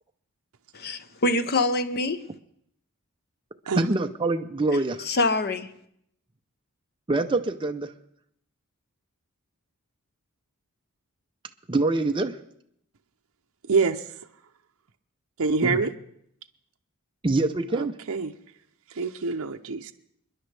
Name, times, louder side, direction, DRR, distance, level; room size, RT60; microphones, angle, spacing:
voice 1, 0.7-2.2 5.1-5.7, left 2 dB, 45° left, 0.8 m, -25 dB
voice 2, 3.8-5.1 7.1-7.9 11.7-12.4 15.6-15.9 17.2-18.0, right 2 dB, 25° right, 0.6 m, -25 dB
voice 3, 13.7-14.0 15.4-15.9 17.7-18.3 18.9-19.9, right 4 dB, 70° right, 0.7 m, -25 dB
29.0 x 10.5 x 3.4 m
head